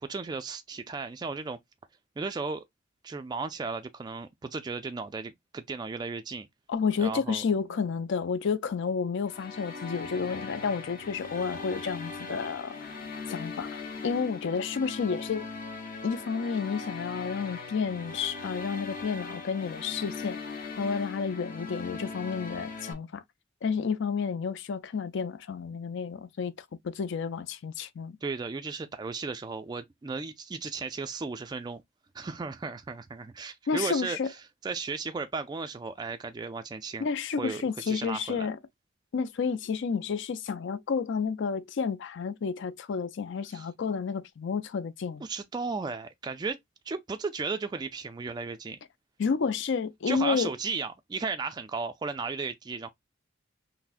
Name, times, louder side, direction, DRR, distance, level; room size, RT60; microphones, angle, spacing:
voice 1, 0.0-1.6 2.2-2.6 3.0-6.5 7.0-7.4 28.2-31.8 32.1-34.4 34.6-37.1 37.4-38.5 43.5-43.7 45.2-46.6 46.9-48.8 50.1-52.9, right 4 dB, 20° right, 0.3 m, -35 dB
voice 2, 6.7-12.8 13.3-15.5 16.0-20.4 20.8-23.2 23.6-26.5 26.8-28.2 33.7-34.3 37.0-38.6 39.1-45.3 49.2-50.5, left 5 dB, 65° left, 0.4 m, -30 dB
sound 1, 9.3-22.9, left 4 dB, 45° left, 0.8 m, -40 dB
5.7 x 2.0 x 2.4 m
head